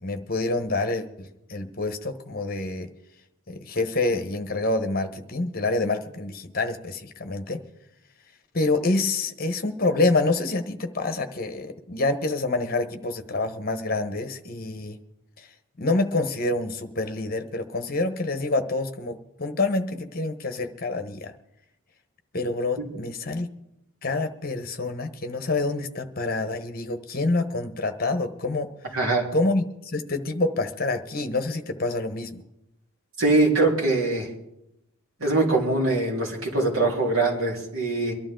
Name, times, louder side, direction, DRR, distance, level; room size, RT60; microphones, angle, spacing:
voice 1, 0.0-2.9 3.5-7.6 8.5-15.0 15.4-15.5 15.8-21.3 22.3-23.5 24.0-28.7 29.3-32.4, left 2 dB, 40° left, 8 dB, 1.1 m, -27 dB
voice 2, 28.9-29.3 33.2-34.3 35.2-38.1, right 2 dB, 70° right, -1 dB, 3.6 m, -23 dB
23.5 x 12.0 x 3.8 m, 0.84 s
head